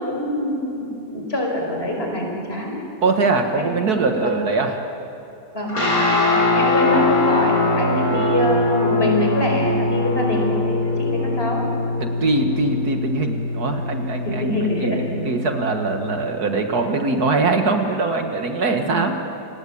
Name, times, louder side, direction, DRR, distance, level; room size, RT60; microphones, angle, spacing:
voice 1, 0.0-2.7 3.6-3.9 4.2-4.3 5.5-5.8 6.3-11.6 14.3-15.2 18.7-19.0, left 1 dB, 35° left, 0 dB, 5.5 m, -25 dB
voice 2, 3.0-4.7 12.0-14.6 14.8-19.1, right 3 dB, 65° right, 5 dB, 2.0 m, -22 dB
sound 1, 5.7-16.2, left 2 dB, 55° left, 7.0 m, -22 dB
28.5 x 20.5 x 8.6 m, 2.7 s
omnidirectional pair, 1.8 m